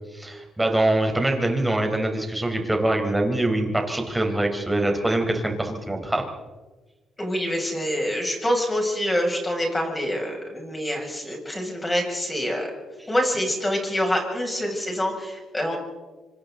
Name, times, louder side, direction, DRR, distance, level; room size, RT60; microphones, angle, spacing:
voice 1, 0.1-6.3, right 1 dB, 10° right, 3 dB, 4.6 m, -24 dB
voice 2, 7.2-12.7 13.1-15.8, equal, 15° left, 0 dB, 7.3 m, -26 dB
26.5 x 25.5 x 4.1 m, 1.3 s
cardioid pair, 90°, 0 cm